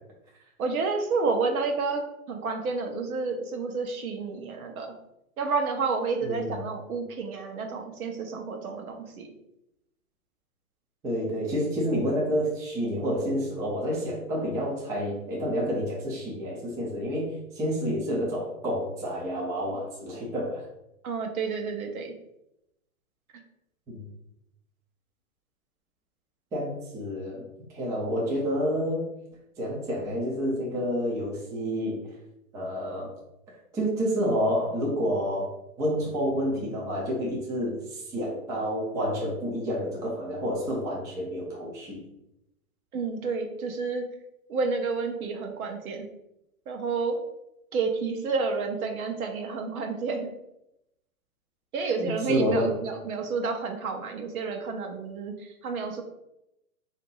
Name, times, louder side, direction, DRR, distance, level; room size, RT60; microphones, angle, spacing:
voice 1, 0.6-5.0 5.4-9.3 21.0-22.1 42.9-44.0 44.5-46.1 46.7-47.2 47.7-50.3 51.7-56.0, right 4 dB, 75° right, 4 dB, 1.0 m, -30 dB
voice 2, 6.2-6.6 11.0-20.6 23.9-24.0 26.5-27.4 27.7-29.1 29.6-32.1 32.5-33.1 33.7-35.5 35.8-42.0 52.0-52.7, equal, 10° right, -4 dB, 0.4 m, -29 dB
3.8 x 2.8 x 3.8 m, 0.85 s
hypercardioid pair, 135°, 43 cm